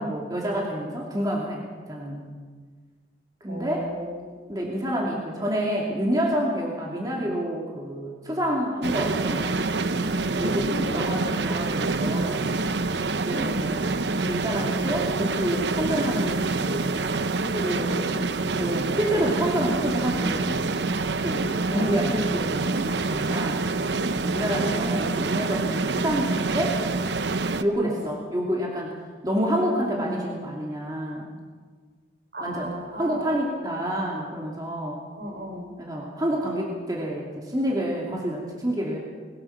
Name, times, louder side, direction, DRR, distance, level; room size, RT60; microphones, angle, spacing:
voice 1, 0.0-2.3 3.4-3.9 4.5-9.6 10.3-12.4 13.2-13.8 14.2-16.9 17.4-20.6 21.2-23.6 24.2-26.8 27.6-29.0 29.2-31.3 32.4-35.0 35.8-39.0, equal, 20° right, -2 dB, 2.8 m, -28 dB
voice 2, 3.5-4.4 10.7-11.6 13.3-13.6 21.7-22.5 24.1-24.2 24.6-25.3 27.8-28.0 32.3-33.3 35.2-35.7, equal, 60° right, 2 dB, 4.6 m, -35 dB
sound 1, 8.8-27.6, right 3 dB, 75° right, 0.9 m, -26 dB
21.5 x 20.5 x 5.9 m, 1.6 s
head